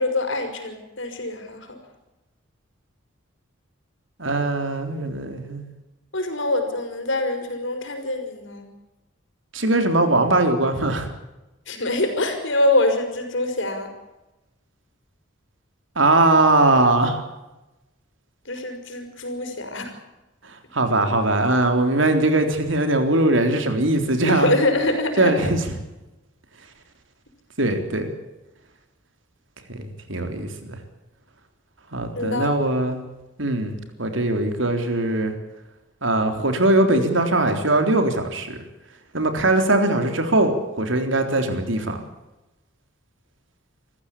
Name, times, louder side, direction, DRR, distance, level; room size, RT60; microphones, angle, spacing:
voice 1, 0.0-1.8 6.1-8.7 11.7-13.9 18.5-19.9 24.2-25.5 32.2-32.8, left 2 dB, 70° left, 6 dB, 5.3 m, -24 dB
voice 2, 4.2-5.7 9.5-11.1 16.0-17.2 20.7-24.5 25.2-25.6 27.6-28.1 29.7-30.8 31.9-33.0 33.4-33.7 34.0-35.3 36.0-38.6 39.1-42.0, right 2 dB, 70° right, 6 dB, 3.8 m, -20 dB
26.5 x 15.0 x 8.6 m, 1.0 s
head